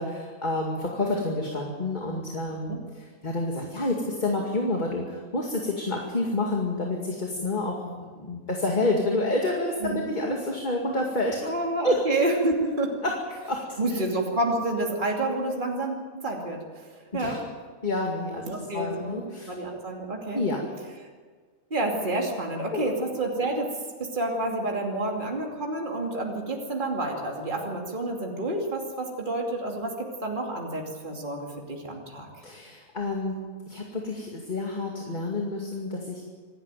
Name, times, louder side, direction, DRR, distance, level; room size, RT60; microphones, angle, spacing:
voice 1, 0.0-11.4 11.8-12.0 13.0-14.0 17.1-17.4 17.8-19.6 20.3-20.6 22.7-22.9 32.4-36.2, left 2 dB, 35° left, 0 dB, 2.4 m, -29 dB
voice 2, 11.4-13.0 13.8-17.4 18.5-20.4 21.7-23.7 24.0-32.3, right 2 dB, 35° right, 0 dB, 2.8 m, -29 dB
26.0 x 12.5 x 9.1 m, 1.5 s
omnidirectional pair, 1.4 m